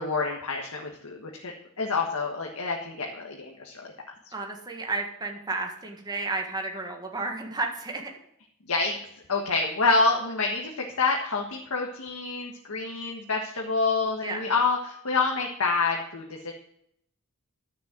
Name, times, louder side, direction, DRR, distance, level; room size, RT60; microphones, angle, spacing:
voice 1, 0.0-3.9 8.7-9.0 9.3-16.5, left 4 dB, 75° left, 0 dB, 1.6 m, -27 dB
voice 2, 4.3-8.0 14.2-14.5, right 3 dB, 20° right, 1 dB, 1.7 m, -32 dB
12.0 x 6.8 x 7.8 m, 0.73 s
head